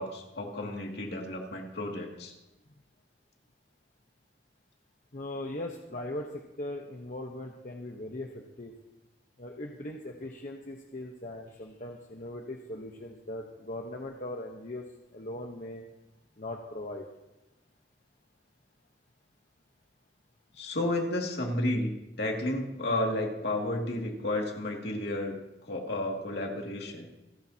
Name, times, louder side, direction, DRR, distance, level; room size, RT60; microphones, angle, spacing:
voice 1, 0.0-2.3 20.6-25.4 25.6-27.1, left 1 dB, 65° left, 0 dB, 2.5 m, -32 dB
voice 2, 5.1-8.7 9.4-14.8 15.1-15.8 16.4-17.0, left 1 dB, 50° left, 1 dB, 1.1 m, -39 dB
28.5 x 10.5 x 2.9 m, 0.96 s
head